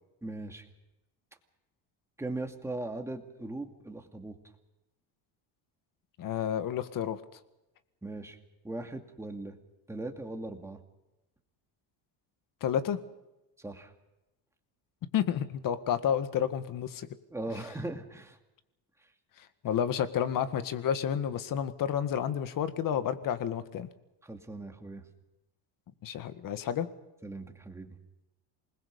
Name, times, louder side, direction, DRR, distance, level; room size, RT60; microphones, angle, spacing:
voice 1, 0.2-0.6 2.2-4.4 8.0-8.4 8.6-9.6 9.9-10.8 13.6-13.9 17.3-18.4 24.2-25.0 27.2-28.0, right 2 dB, 5° right, 4 dB, 2.4 m, -39 dB
voice 2, 6.2-7.2 12.6-13.0 15.1-17.1 19.4-23.9 26.0-26.9, left 9 dB, 50° left, 11 dB, 1.8 m, -30 dB
27.5 x 21.0 x 5.4 m, 0.99 s
cardioid pair, 135°, 42 cm